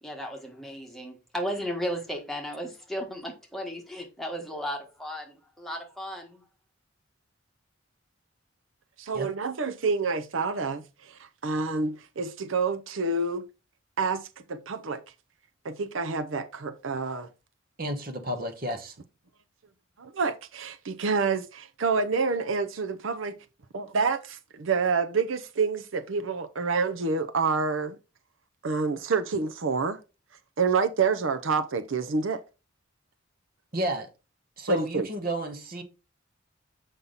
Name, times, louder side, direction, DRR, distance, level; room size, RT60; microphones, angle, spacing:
voice 1, 0.0-6.4, equal, ahead, 1.5 m, -35 dB
voice 2, 9.0-10.8 11.4-13.4 14.0-15.0 15.6-17.3 20.0-23.4 23.7-28.0 28.6-30.0 30.6-32.4 34.7-35.1, right 4 dB, 75° right, 0.7 m, -28 dB
voice 3, 17.8-18.9 33.7-34.1 34.6-35.8, right 1 dB, 45° right, 1.3 m, -31 dB
7.2 x 5.4 x 4.0 m
head